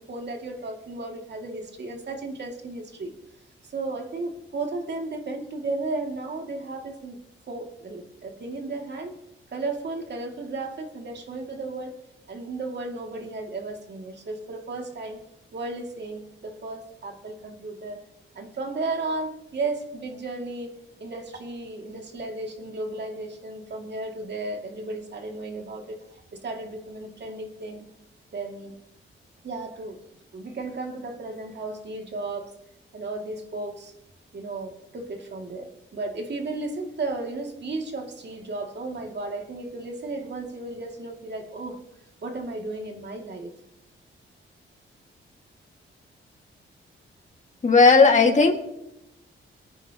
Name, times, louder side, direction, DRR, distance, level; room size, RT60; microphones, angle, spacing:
voice 1, 0.0-3.1 3.6-9.2 9.5-11.9 12.3-15.2 15.5-18.0 18.3-20.7 21.0-27.9 28.3-28.7 29.4-30.0 30.3-32.5 32.9-33.9 34.3-41.8 42.2-43.6, right 3 dB, 55° right, 2 dB, 2.4 m, -34 dB
voice 2, 47.6-48.5, left 4 dB, 35° left, 2 dB, 1.9 m, -15 dB
24.0 x 9.8 x 2.9 m, 0.86 s
cardioid pair, 110°, 21 cm